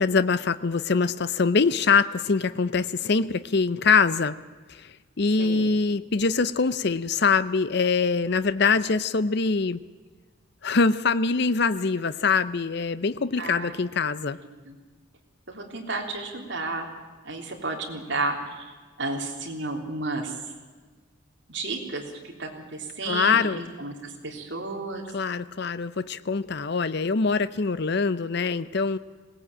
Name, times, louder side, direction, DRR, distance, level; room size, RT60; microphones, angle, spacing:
voice 1, 0.0-4.4 4.7-9.8 10.6-14.4 23.1-23.6 25.1-29.0, left 4 dB, 50° left, 14 dB, 0.6 m, -24 dB
voice 2, 5.4-5.7 13.4-13.7 14.7-14.8 15.5-16.9 17.2-18.7 19.0-20.3 21.5-25.1, right 3 dB, 55° right, 1 dB, 3.6 m, -32 dB
21.0 x 18.5 x 8.7 m, 1.4 s
head